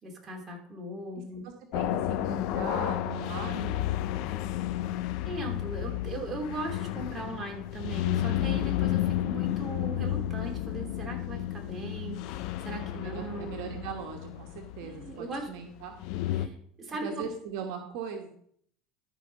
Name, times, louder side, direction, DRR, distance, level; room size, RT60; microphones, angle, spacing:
voice 1, 0.0-1.5 5.2-13.6 14.8-15.5 16.3-17.2, right 1 dB, 25° right, 0 dB, 3.0 m, -39 dB
voice 2, 1.4-3.9 12.8-15.9 17.0-18.3, right 7 dB, 70° right, 3 dB, 1.3 m, -39 dB
sound 1, 1.7-16.5, left 13 dB, 65° left, 0.7 m, -32 dB
12.5 x 5.0 x 5.5 m, 0.64 s
supercardioid pair, 115°, 0 cm